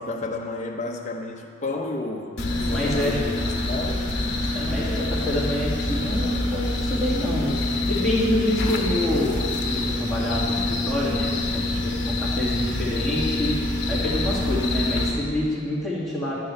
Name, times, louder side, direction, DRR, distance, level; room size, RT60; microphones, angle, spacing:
voice 1, 0.0-2.3 2.7-4.1, left 2 dB, 35° left, 2 dB, 0.8 m, -31 dB
sound 1, 2.4-15.1, left 2 dB, 60° left, 1.1 m, -26 dB
voice 2, 2.7-3.2 4.5-16.4, left 1 dB, ahead, -9 dB, 2.1 m, -27 dB
11.0 x 4.7 x 7.7 m, 2.4 s
head